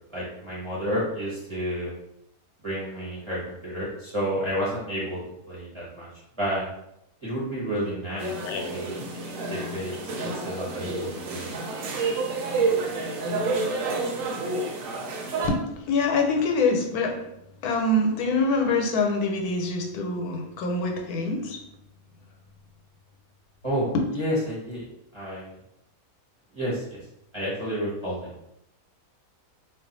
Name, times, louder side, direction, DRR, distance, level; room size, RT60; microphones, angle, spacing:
voice 1, 0.1-1.9 2.6-5.2 5.5-6.1 6.4-6.7 7.2-8.3 8.7-8.9 9.5-11.5 23.6-24.8 25.1-25.5 26.5-27.0 27.3-28.3, equal, 25° right, -8 dB, 0.7 m, -30 dB
sound 1, 8.2-15.5, right 3 dB, 70° right, 0.9 m, -29 dB
voice 2, 8.3-8.7 9.9-10.0 15.4-17.2 17.6-21.6 23.9-24.0, left 3 dB, 80° left, 2 dB, 1.1 m, -25 dB
2.4 x 2.3 x 3.8 m, 0.81 s
omnidirectional pair, 1.6 m